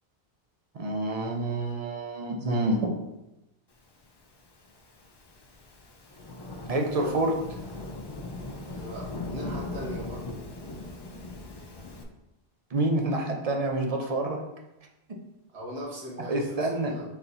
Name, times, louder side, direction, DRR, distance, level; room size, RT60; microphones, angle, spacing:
voice 1, 0.7-2.9 6.7-7.3 12.7-14.4 16.3-16.9, right 2 dB, 45° right, 1 dB, 0.5 m, -27 dB
Thunderstorm / Rain, 4.3-12.0, left 2 dB, 40° left, 0.3 m, -39 dB
voice 2, 8.7-10.2 15.5-17.0, equal, 85° right, -4 dB, 1.3 m, -39 dB
4.2 x 4.2 x 2.6 m, 0.94 s
omnidirectional pair, 1.1 m